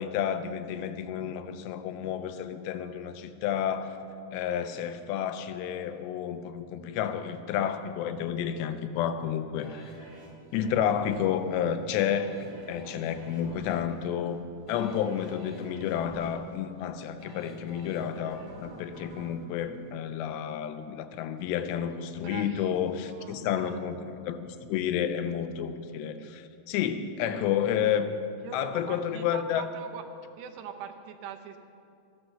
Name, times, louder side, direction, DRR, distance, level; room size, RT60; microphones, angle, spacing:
voice 1, 0.0-4.0 4.3-9.9 10.5-14.4 14.7-28.1 28.5-29.6, left 9 dB, 90° left, 9 dB, 2.9 m, -30 dB
sound 1, 9.6-20.6 21.0-21.1, right 2 dB, 40° right, 1.6 m, -49 dB
voice 2, 22.2-22.7 23.0-23.8 28.4-30.1 30.4-31.6, right 8 dB, 85° right, 7 dB, 3.0 m, -42 dB
14.5 x 10.5 x 6.7 m, 2.5 s
omnidirectional pair, 4.8 m